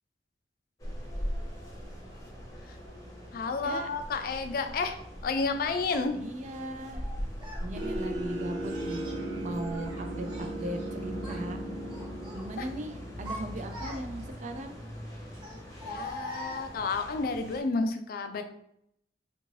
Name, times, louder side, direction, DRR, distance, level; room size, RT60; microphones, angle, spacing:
sound 1, 0.8-17.6, equal, 20° left, 0.8 m, -42 dB
voice 1, 3.3-5.0 5.2-6.2 12.6-12.7 15.8-18.4, left 4 dB, 55° left, 7 dB, 0.4 m, -31 dB
Child speech kid speaking, 5.9-6.0 6.9-7.7 8.6-9.2 9.6-10.9 11.1-11.5 11.9-12.5 13.0-14.3 15.3-17.1, left 1 dB, 25° right, 1.0 m, -43 dB
voice 2, 6.1-7.0 7.6-11.6 12.3-14.8, right 1 dB, 45° right, 7 dB, 0.4 m, -38 dB
sound 2, 7.8-14.3, right 1 dB, 75° right, 1.0 m, -37 dB
3.5 x 2.5 x 3.1 m, 0.74 s
head